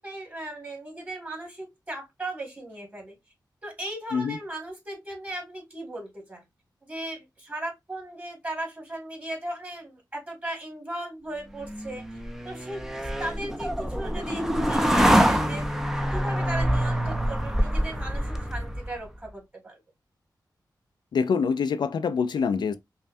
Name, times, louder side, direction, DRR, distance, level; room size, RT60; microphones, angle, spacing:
voice 1, 0.0-3.2 3.6-6.4 6.8-12.1 12.4-12.9 13.2-15.8 16.1-19.8, right 1 dB, 20° right, 2.0 m, -37 dB
sound 1, 11.6-19.0, equal, 5° right, 0.6 m, -25 dB
voice 2, 21.1-22.7, left 6 dB, 80° left, 0.4 m, -25 dB
5.4 x 2.2 x 2.6 m
wide cardioid pair, 85°, 7 cm